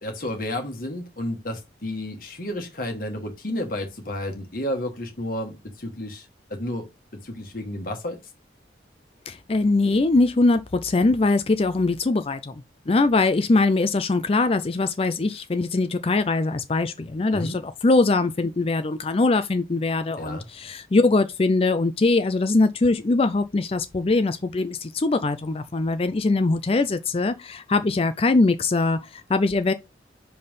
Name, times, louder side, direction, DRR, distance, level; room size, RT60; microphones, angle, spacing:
voice 1, 0.0-6.9 7.2-8.2 17.3-17.6 20.2-20.5, left 1 dB, 50° left, 1.3 m, -31 dB
voice 2, 9.3-29.7, left 3 dB, 30° left, 0.4 m, -22 dB
5.3 x 4.2 x 5.4 m
head